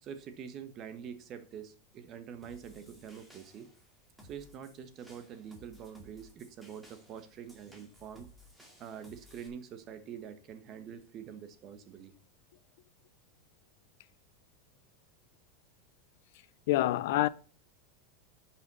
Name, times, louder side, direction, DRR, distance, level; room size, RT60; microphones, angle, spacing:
voice 1, 0.0-3.7 4.2-8.3 8.8-12.1, right 8 dB, 30° right, 1.3 m, -45 dB
sound 1, 2.4-9.5, equal, 5° right, 2.3 m, -58 dB
voice 2, 16.7-17.3, left 16 dB, 65° left, 0.5 m, -26 dB
10.0 x 5.7 x 5.4 m
supercardioid pair, 155°, 0 cm